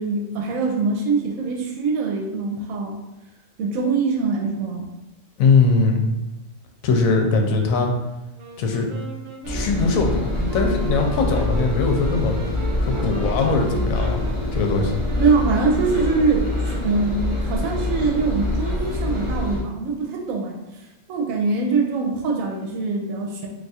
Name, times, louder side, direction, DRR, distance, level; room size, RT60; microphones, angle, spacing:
voice 1, 0.0-3.0 3.6-4.9 15.2-23.5, right 4 dB, 85° right, 0 dB, 1.0 m, -23 dB
voice 2, 5.4-6.1 6.8-7.9 8.6-8.9 9.5-12.3 12.8-14.2 14.5-14.9, left 4 dB, 90° left, 2 dB, 1.0 m, -20 dB
Wind instrument woodwind instrument, 8.3-17.1, right 3 dB, 65° right, 0.4 m, -38 dB
Engine, 9.4-19.6, left 1 dB, 30° left, 0.6 m, -25 dB
2.6 x 2.3 x 4.1 m, 0.98 s
omnidirectional pair, 1.4 m